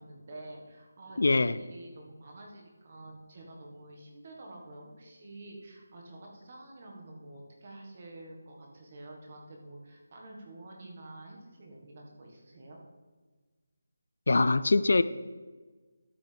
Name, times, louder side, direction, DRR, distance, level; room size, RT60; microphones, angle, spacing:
voice 1, 0.0-12.8, right 2 dB, 30° right, 0 dB, 1.5 m, -48 dB
voice 2, 1.2-1.6 14.3-15.0, left 3 dB, 60° left, 15 dB, 0.3 m, -23 dB
12.0 x 8.1 x 3.4 m, 1.4 s
figure-of-eight pair, 175°, 0 cm